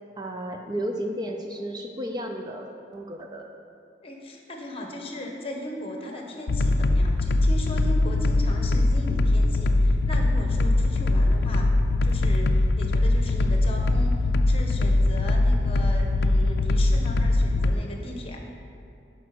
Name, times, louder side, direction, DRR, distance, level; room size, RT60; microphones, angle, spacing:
voice 1, 0.2-3.5, equal, 25° right, 3 dB, 0.6 m, -33 dB
voice 2, 4.0-11.7 12.0-18.4, left 1 dB, 35° left, 1 dB, 1.2 m, -37 dB
sound 1, 6.5-17.7, left 2 dB, 65° left, 0.4 m, -22 dB
11.0 x 5.2 x 6.0 m, 2.6 s
head